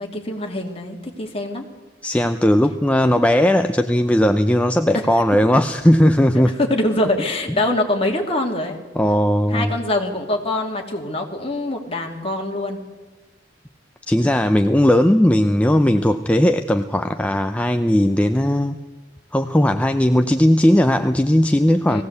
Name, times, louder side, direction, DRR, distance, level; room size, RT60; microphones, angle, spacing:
voice 1, 0.0-1.7 4.9-5.1 6.6-8.8 9.5-12.8 21.9-22.0, left 1 dB, 30° left, 1 dB, 2.8 m, -24 dB
voice 2, 2.0-6.6 9.0-9.7 14.1-18.8 19.3-22.0, left 1 dB, 5° left, 7 dB, 0.6 m, -17 dB
19.5 x 16.0 x 8.2 m, 1.3 s
head